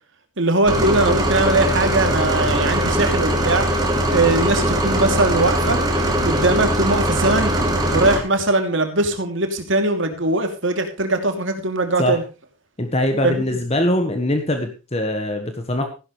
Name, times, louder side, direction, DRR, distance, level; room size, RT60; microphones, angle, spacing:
voice 1, 0.4-3.7 4.1-5.8 6.2-7.5 7.9-12.2 13.2-13.6, right 2 dB, 60° right, 6 dB, 2.8 m, -20 dB
sound 1, 0.7-8.2, right 1 dB, 20° right, 2.8 m, -20 dB
voice 2, 12.8-15.9, left 1 dB, 30° left, 6 dB, 1.5 m, -22 dB
15.0 x 12.0 x 3.2 m, 0.31 s
head